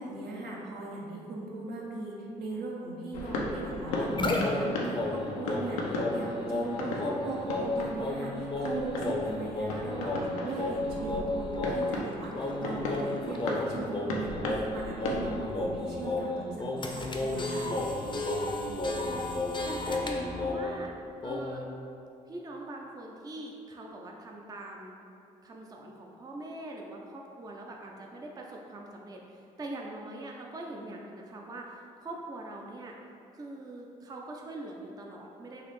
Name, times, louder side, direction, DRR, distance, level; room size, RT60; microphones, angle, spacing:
voice 1, 0.0-17.7, right 2 dB, 70° right, -4 dB, 0.8 m, -38 dB
sound 1, 3.1-15.8, left 2 dB, 90° left, 0.4 m, -37 dB
sound 2, 3.9-20.9 21.2-21.6, left 2 dB, 25° left, 0.5 m, -33 dB
voice 2, 18.7-19.3 19.6-20.9 21.2-21.7 22.3-25.0 25.4-33.0 33.3-35.6, right 2 dB, 20° right, 0 dB, 0.4 m, -42 dB
3.9 x 2.5 x 3.1 m, 2.7 s
hypercardioid pair, 50°, 18 cm